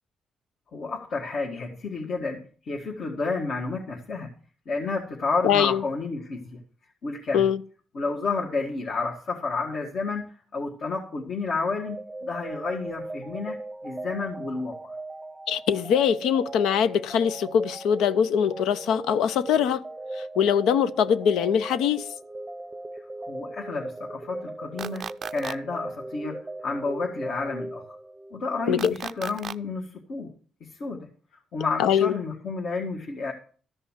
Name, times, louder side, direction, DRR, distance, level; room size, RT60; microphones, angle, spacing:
voice 1, 0.7-4.3 4.7-6.6 7.0-7.4 7.9-13.6 13.8-15.0 23.3-28.0 28.3-30.3 30.6-31.1 31.5-33.3, left 4 dB, 60° left, 1.9 m, -31 dB
voice 2, 5.4-5.8 7.3-7.6 15.5-19.8 20.1-22.1 28.7-28.9 31.8-32.1, left 8 dB, 90° left, 0.7 m, -22 dB
sound 1, 11.8-28.4, right 2 dB, 15° right, 0.7 m, -38 dB
sound 2, 24.8-25.5 28.8-29.5, right 7 dB, 55° right, 0.4 m, -35 dB
13.5 x 5.5 x 7.4 m
cardioid pair, 90°, 0 cm